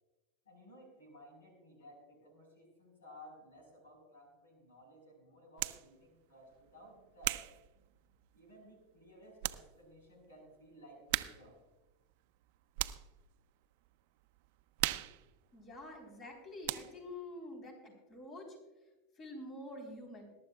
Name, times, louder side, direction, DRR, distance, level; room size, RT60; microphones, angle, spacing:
voice 1, 0.4-7.5 8.3-11.6, equal, 85° left, 2 dB, 4.8 m, -57 dB
sound 1, 5.6-5.9 6.5-8.5 9.0-9.1 9.4-9.7 10.0-10.1 11.1-11.6 11.9-13.2 13.6-13.9 14.2-16.3 16.6-17.1, right 19 dB, 60° right, 0.5 m, -39 dB
voice 2, 15.5-18.6 19.2-20.3, left 1 dB, 40° left, 2 dB, 3.9 m, -47 dB
21.5 x 11.5 x 2.4 m, 1.1 s
hypercardioid pair, 90°, 0 cm